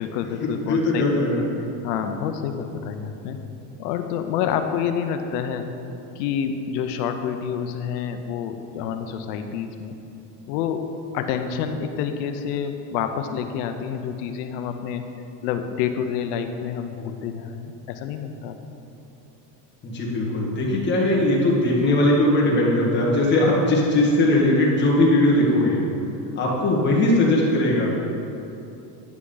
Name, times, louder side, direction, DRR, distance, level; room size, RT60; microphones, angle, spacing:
voice 1, 0.0-1.2 1.8-3.4 3.8-5.7 6.2-10.0 10.5-10.8 11.1-15.0 15.4-18.6 26.0-26.2, left 8 dB, 80° left, 7 dB, 0.7 m, -28 dB
voice 2, 0.7-1.4 19.8-25.8 26.3-27.9, left 1 dB, 20° left, -4 dB, 1.6 m, -19 dB
9.8 x 6.0 x 3.9 m, 2.8 s
supercardioid pair, 145°, 48 cm